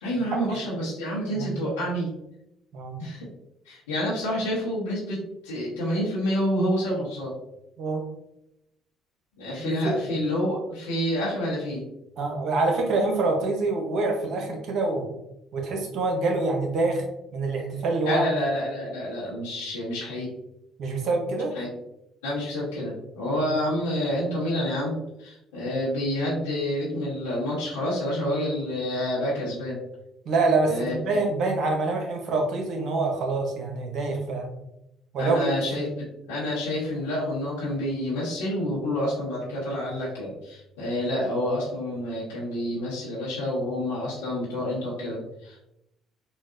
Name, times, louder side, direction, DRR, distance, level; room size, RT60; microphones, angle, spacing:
voice 1, 0.0-2.1 3.0-3.2 3.7-7.3 9.4-11.8 18.0-20.3 21.5-21.7 22.2-29.8 30.6-30.9 35.2-45.6, left 1 dB, 85° left, -8 dB, 0.9 m, -28 dB
voice 2, 9.6-10.1 12.2-15.1 15.5-17.0 17.3-18.2 20.8-21.5 30.3-34.5 35.1-35.5 35.8-35.9, right 3 dB, 60° right, 2 dB, 0.8 m, -26 dB
4.0 x 2.2 x 2.5 m, 0.85 s
hypercardioid pair, 60°, 0 cm